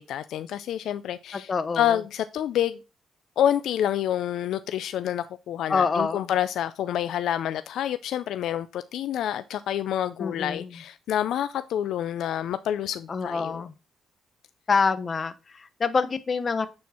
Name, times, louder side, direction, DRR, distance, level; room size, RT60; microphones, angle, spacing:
voice 1, 0.0-1.5 1.7-2.8 3.4-13.6, left 10 dB, 75° left, 0.4 m, -28 dB
voice 2, 1.3-2.0 5.7-6.3 10.2-10.8 13.1-13.7 14.7-16.7, left 4 dB, 35° left, 0.9 m, -26 dB
9.4 x 4.4 x 4.3 m
cardioid pair, 90°, 0 cm